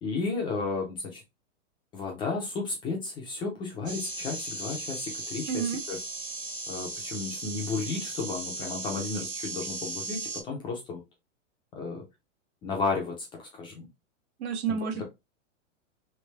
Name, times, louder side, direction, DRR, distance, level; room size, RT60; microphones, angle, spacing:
voice 1, 0.0-1.2 1.9-6.0 6.7-11.0 11.7-12.0 12.6-13.8 14.7-14.8, left 4 dB, 15° left, 0.5 m, -33 dB
sound 1, 3.9-10.4, right 3 dB, 30° right, 1.1 m, -37 dB
voice 2, 5.5-5.8 14.4-15.0, right 7 dB, 55° right, 0.9 m, -30 dB
3.3 x 3.1 x 3.2 m
supercardioid pair, 155°, 37 cm